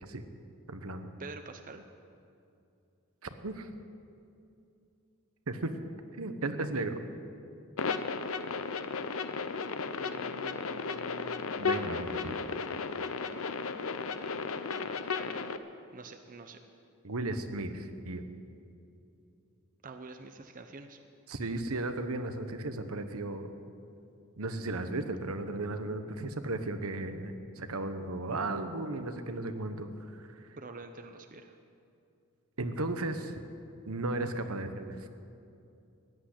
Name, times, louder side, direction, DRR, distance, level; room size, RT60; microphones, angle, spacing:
voice 1, 0.7-1.1 3.4-3.8 5.5-5.7 6.2-7.0 11.6-12.4 17.0-17.8 18.0-18.2 21.3-23.5 24.4-30.5 32.6-33.4 33.9-35.1, right 2 dB, 75° right, 8 dB, 1.1 m, -35 dB
voice 2, 1.2-1.8 10.0-11.4 15.9-16.6 19.8-21.0 30.6-31.6, right 3 dB, 40° right, 7 dB, 0.7 m, -47 dB
sound 1, 7.8-15.6, left 5 dB, 65° left, 0.7 m, -34 dB
16.0 x 8.8 x 10.0 m, 2.6 s
head